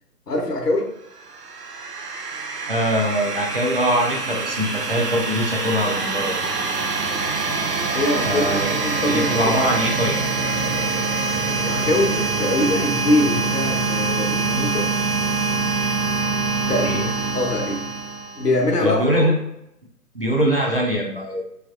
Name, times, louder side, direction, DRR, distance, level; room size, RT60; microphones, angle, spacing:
voice 1, 0.3-0.9 7.9-8.4 8.7-9.3 11.6-14.9 16.7-17.1 17.3-17.9 18.3-19.0, left 2 dB, 75° left, 2 dB, 0.9 m, -23 dB
sound 1, 1.1-18.8, right 3 dB, 75° right, 0.7 m, -25 dB
voice 2, 2.7-6.4 8.2-8.7 9.1-10.2 16.8-17.1 18.8-19.3 20.1-21.4, equal, 40° right, -2 dB, 0.5 m, -22 dB
3.3 x 3.0 x 2.3 m, 0.80 s
figure-of-eight pair, 145°, 48 cm